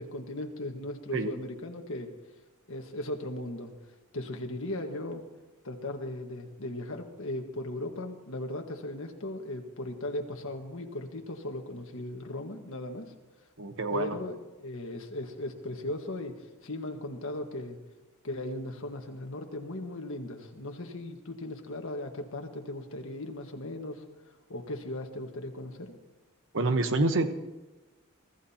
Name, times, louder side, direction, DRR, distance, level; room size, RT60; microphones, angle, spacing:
voice 1, 0.0-2.1 2.7-3.7 4.1-5.2 5.6-13.1 13.9-17.8 18.2-25.9, left 1 dB, 70° left, 3 dB, 1.6 m, -37 dB
voice 2, 13.6-14.2 26.5-27.3, right 2 dB, 65° right, 8 dB, 1.1 m, -27 dB
23.5 x 14.5 x 2.9 m, 1.2 s
head